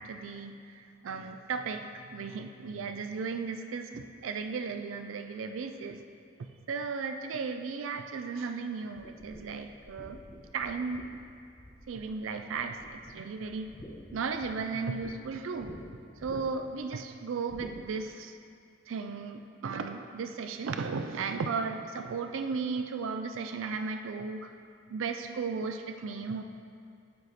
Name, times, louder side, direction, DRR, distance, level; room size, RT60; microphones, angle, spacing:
voice 1, 0.0-6.0 6.7-10.2 10.5-11.0 11.9-13.7 14.1-15.7 16.2-18.4 18.9-24.5 24.9-26.4, right 5 dB, 80° right, 7 dB, 0.4 m, -35 dB
sound 1, 9.0-12.2 12.5-13.1 13.4-15.1 15.6-15.8 16.2-16.7 17.5-17.8, equal, 20° left, 1.0 m, -49 dB
8.9 x 4.9 x 4.1 m, 2.4 s
head